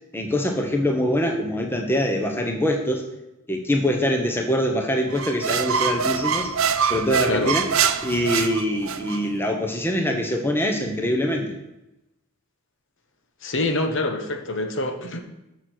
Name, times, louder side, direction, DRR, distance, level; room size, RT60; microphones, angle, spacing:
voice 1, 0.1-3.0 3.5-6.5 6.8-7.7 8.0-11.6, equal, 10° left, 3 dB, 1.0 m, -24 dB
sound 1, 5.1-9.2, right 6 dB, 60° right, 0.6 m, -24 dB
voice 2, 13.4-15.2, left 2 dB, 55° left, 5 dB, 1.1 m, -25 dB
13.5 x 6.4 x 4.5 m, 0.93 s
head